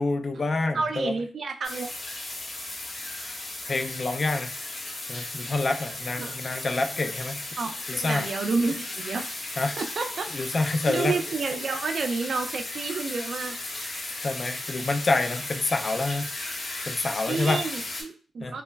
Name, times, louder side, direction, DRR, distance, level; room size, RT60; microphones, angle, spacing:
voice 1, 0.0-1.1 3.2-3.3 3.7-4.5 5.1-7.4 7.9-8.3 9.6-9.8 10.3-11.1 14.2-16.3 16.9-17.6 18.4-18.5, left 3 dB, 40° left, 6 dB, 0.3 m, -27 dB
voice 2, 0.7-1.9 6.2-6.3 7.6-9.3 9.8-10.3 10.7-13.6 17.3-18.6, right 4 dB, 60° right, 6 dB, 0.3 m, -30 dB
sound 1, 1.6-18.0, left 2 dB, 70° left, 1.4 m, -36 dB
3.1 x 2.0 x 2.2 m, 0.41 s
wide cardioid pair, 125°, 0 cm